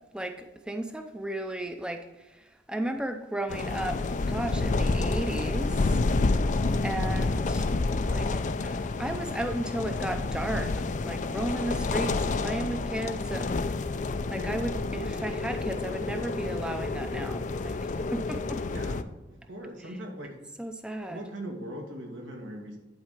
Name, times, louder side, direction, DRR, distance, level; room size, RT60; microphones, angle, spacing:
voice 1, 0.1-2.0 2.7-4.0 4.3-6.0 6.8-7.6 8.1-10.7 11.0-13.5 14.3-17.8 18.1-18.6 20.6-21.2, right 1 dB, 5° right, 6 dB, 0.5 m, -34 dB
sound 1, 3.5-19.0, left 3 dB, 40° left, 0.4 m, -29 dB
voice 2, 18.7-20.4 21.1-22.8, right 1 dB, 90° right, 0 dB, 2.1 m, -40 dB
11.0 x 4.3 x 4.9 m, 1.0 s
head